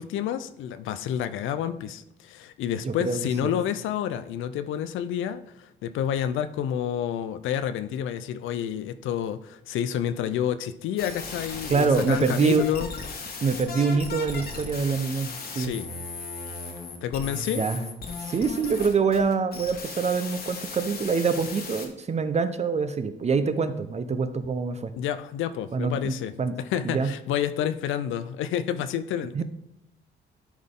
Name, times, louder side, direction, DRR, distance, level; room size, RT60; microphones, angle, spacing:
voice 1, 0.0-13.4 15.5-15.9 17.0-17.6 24.9-29.4, left 9 dB, 80° left, 12 dB, 0.5 m, -29 dB
voice 2, 2.8-3.5 11.7-12.6 13.4-15.8 17.5-17.8 18.2-24.9 25.7-26.5 26.8-27.1 29.3-29.4, right 5 dB, 35° right, 10 dB, 0.6 m, -25 dB
sound 1, 11.0-21.9, left 4 dB, 50° left, 1.4 m, -37 dB
11.0 x 4.0 x 3.7 m, 0.81 s
cardioid pair, 90°, 20 cm